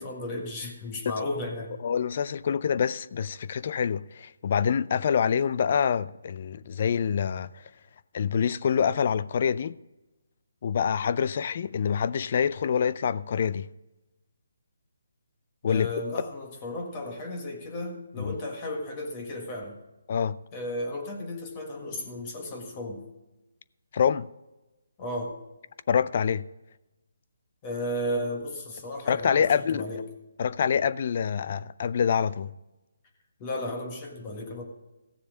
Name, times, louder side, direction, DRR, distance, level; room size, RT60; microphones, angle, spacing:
voice 1, 0.0-1.8 15.6-19.8 20.5-23.0 25.0-25.3 27.6-30.0 33.4-34.6, left 1 dB, 25° left, 1.7 m, -34 dB
voice 2, 1.8-7.6 8.1-9.8 10.6-13.7 15.6-15.9 18.2-18.4 20.1-20.4 23.9-24.3 25.9-26.5 29.1-29.8 30.4-32.5, left 7 dB, 45° left, 0.4 m, -26 dB
15.5 x 7.1 x 5.0 m
hypercardioid pair, 155°, 0 cm